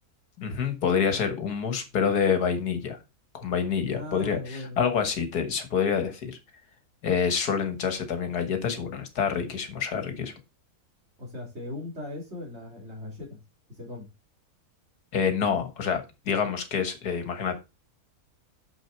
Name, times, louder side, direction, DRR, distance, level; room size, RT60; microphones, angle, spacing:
voice 1, 0.4-3.0 3.3-6.4 7.0-10.3 15.1-17.6, left 6 dB, 85° left, 8 dB, 2.0 m, -27 dB
voice 2, 3.9-4.8 11.2-13.4 13.8-14.1, left 2 dB, 45° right, 0 dB, 3.6 m, -38 dB
6.8 x 6.5 x 4.5 m, 0.26 s
omnidirectional pair, 1.7 m